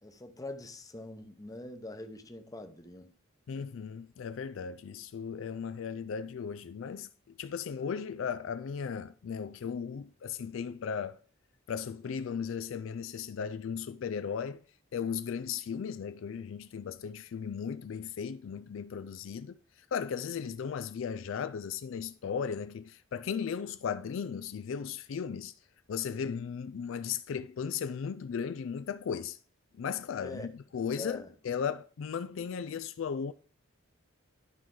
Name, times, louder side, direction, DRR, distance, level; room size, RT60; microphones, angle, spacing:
voice 1, 0.0-3.1 30.2-30.5 31.0-31.3, left 2 dB, 15° left, 0.8 m, -43 dB
voice 2, 3.5-7.1 7.4-11.2 11.7-14.6 14.9-19.6 19.9-25.5 25.9-29.4 29.7-33.3, left 7 dB, 70° left, 0.4 m, -36 dB
11.5 x 4.7 x 3.8 m
head